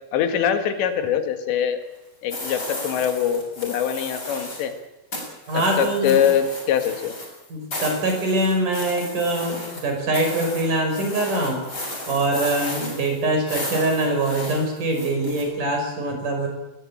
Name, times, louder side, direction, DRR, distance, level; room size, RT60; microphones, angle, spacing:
voice 1, 0.1-1.8 2.2-4.7 5.5-7.1, left 8 dB, 85° left, 8 dB, 4.0 m, -23 dB
sound 1, 2.3-4.7 5.1-15.4, left 1 dB, 20° left, 7.6 m, -34 dB
voice 2, 5.5-6.3 7.5-11.6 12.1-16.5, right 2 dB, 50° right, 3 dB, 6.7 m, -23 dB
21.5 x 18.5 x 8.7 m, 0.97 s
omnidirectional pair, 5.0 m